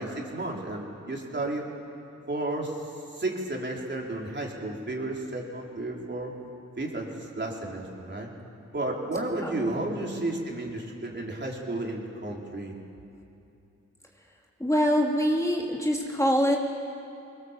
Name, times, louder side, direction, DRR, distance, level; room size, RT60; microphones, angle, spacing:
voice 1, 0.0-1.6 2.3-2.8 3.1-6.3 6.8-8.3 8.7-12.7, right 2 dB, 40° right, -1 dB, 4.6 m, -32 dB
voice 2, 9.4-10.2 14.6-16.6, equal, 10° left, -1 dB, 2.7 m, -25 dB
22.5 x 20.5 x 7.6 m, 2.8 s
cardioid pair, 60°, 29 cm